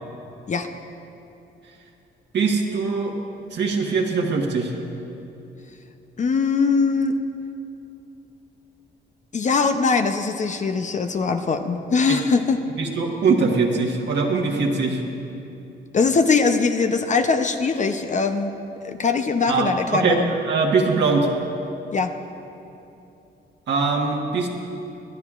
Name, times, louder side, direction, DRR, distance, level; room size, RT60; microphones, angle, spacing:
voice 1, 2.3-3.1 3.5-4.8 12.1-12.2 12.8-15.0 19.5-21.3 23.7-24.5, right 4 dB, 60° right, 0 dB, 1.3 m, -22 dB
voice 2, 6.2-7.1 9.3-12.6 15.9-18.5 18.8-20.3 21.9-22.1, left 4 dB, 40° left, 7 dB, 0.6 m, -21 dB
24.0 x 10.5 x 2.4 m, 2.8 s
cardioid pair, 90°, 20 cm